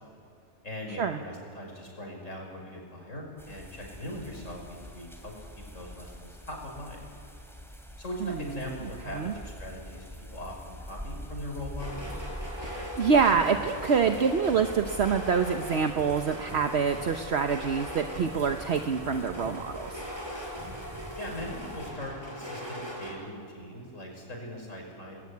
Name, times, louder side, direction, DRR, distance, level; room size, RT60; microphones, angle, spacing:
voice 1, 0.6-7.1 8.0-10.1 10.3-12.1 21.2-25.2, left 1 dB, 75° left, 0 dB, 5.7 m, -40 dB
sound 1, 3.4-21.9, equal, ahead, 2.8 m, -45 dB
sound 2, 11.8-23.1, equal, 20° right, 5.5 m, -40 dB
voice 2, 12.6-20.0, right 6 dB, 60° right, 6 dB, 1.2 m, -26 dB
30.0 x 20.5 x 9.5 m, 2.4 s
omnidirectional pair, 1.3 m